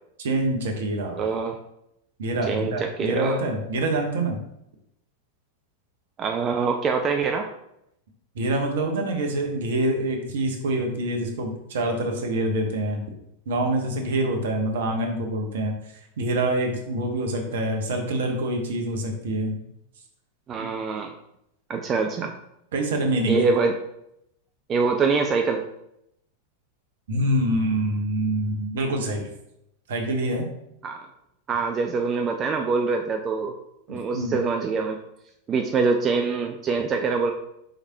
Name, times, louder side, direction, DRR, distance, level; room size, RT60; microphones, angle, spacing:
voice 1, 0.2-1.3 2.2-4.4 8.3-13.0 13.5-19.6 20.6-20.7 22.7-23.5 27.1-29.3 29.9-30.5 33.9-34.4, right 1 dB, 60° right, 3 dB, 0.8 m, -26 dB
voice 2, 1.2-1.6 2.5-3.4 6.2-7.5 20.5-21.1 21.7-22.4 23.3-23.8 24.7-25.6 30.8-31.1 31.5-33.5 33.9-35.0 35.5-37.3, right 4 dB, 25° right, 4 dB, 0.3 m, -24 dB
4.9 x 3.3 x 2.7 m, 0.80 s
figure-of-eight pair, 90°, 0 cm